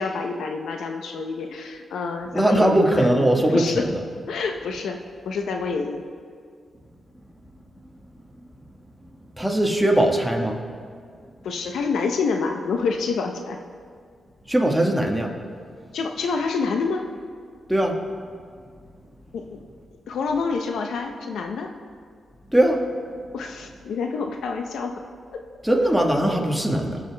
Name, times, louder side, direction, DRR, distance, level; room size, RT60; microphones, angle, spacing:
voice 1, 0.0-3.0 3.4-3.9 4.3-6.0 11.4-13.6 15.9-17.0 19.3-19.4 20.1-21.7 23.3-25.0 25.3-25.4, left 4 dB, 85° left, 4 dB, 0.8 m, -27 dB
voice 2, 2.3-4.0 9.4-10.6 14.5-15.3 17.7-18.0 22.5-22.8 25.6-27.0, right 1 dB, ahead, 1 dB, 1.5 m, -20 dB
19.0 x 7.2 x 3.4 m, 2.1 s
cardioid pair, 85°, 0 cm